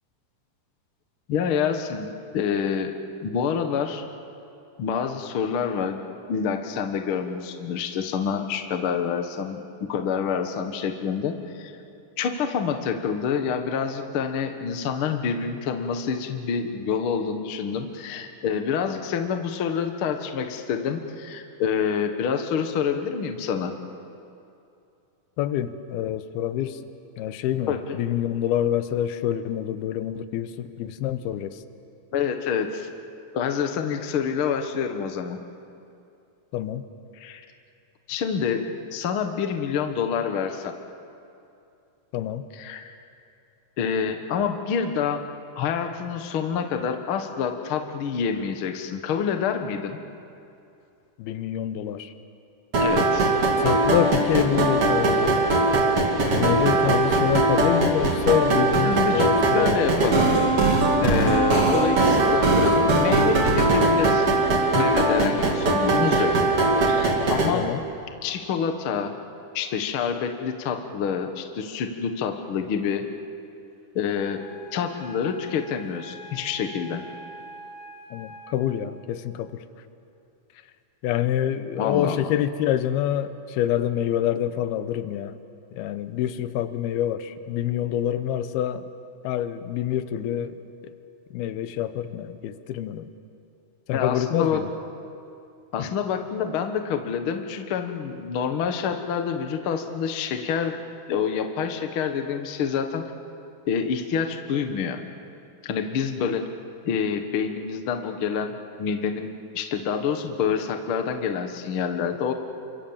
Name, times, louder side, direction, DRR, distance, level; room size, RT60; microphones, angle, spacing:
voice 1, 1.3-2.1 2.3-2.9 3.2-4.1 4.8-6.0 6.3-11.7 12.2-23.7 27.7-28.0 32.1-32.9 33.3-35.4 37.2-37.4 38.1-38.6 38.9-40.7 42.6-42.9 43.8-45.2 45.6-50.0 52.8-53.3 58.8-59.3 59.5-60.3 61.0-64.4 64.7-66.3 66.8-67.7 68.2-69.1 69.5-73.0 73.9-74.4 74.7-77.0 81.8-82.3 93.9-94.6 95.7-100.8 101.1-103.1 103.7-105.0 105.6-106.4 106.8-112.3, left 7 dB, 65° left, 6 dB, 1.3 m, -27 dB
voice 2, 25.4-26.8 27.2-31.6 36.5-36.8 42.1-42.4 51.2-52.1 53.6-55.4 56.3-59.8 67.5-67.8 78.1-79.7 81.0-85.4 85.7-88.9 89.2-90.9 91.3-93.1 93.9-94.7 95.8-95.9, left 11 dB, 80° left, 11 dB, 2.8 m, -26 dB
sound 1, 52.7-67.5, right 2 dB, 40° right, 2.9 m, -20 dB
Wind instrument woodwind instrument, 74.3-78.9, equal, 70° right, 9.4 m, -44 dB
28.5 x 25.0 x 7.3 m, 2.6 s
omnidirectional pair, 4.5 m